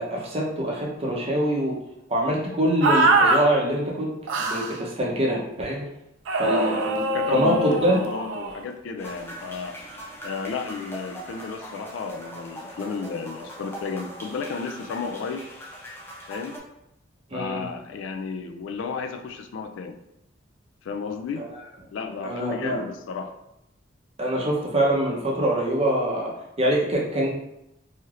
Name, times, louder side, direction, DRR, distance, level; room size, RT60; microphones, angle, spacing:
voice 1, 0.0-1.8 2.1-4.1 4.4-5.8 6.4-8.0 17.3-17.6 21.4-21.5 22.2-22.8 24.2-26.3 26.6-27.3, right 1 dB, 30° right, -2 dB, 0.7 m, -24 dB
sound 1, 2.8-3.4 4.3-4.8 6.3-8.6, right 2 dB, 65° right, 0.4 m, -23 dB
voice 2, 6.4-9.8 10.2-15.5 16.3-16.6 17.3-20.0 20.8-21.5 21.9-23.4, left 5 dB, 65° left, 6 dB, 0.3 m, -32 dB
sound 2, 9.0-16.6, equal, 10° left, 0.6 m, -41 dB
3.2 x 2.7 x 2.4 m, 0.83 s
head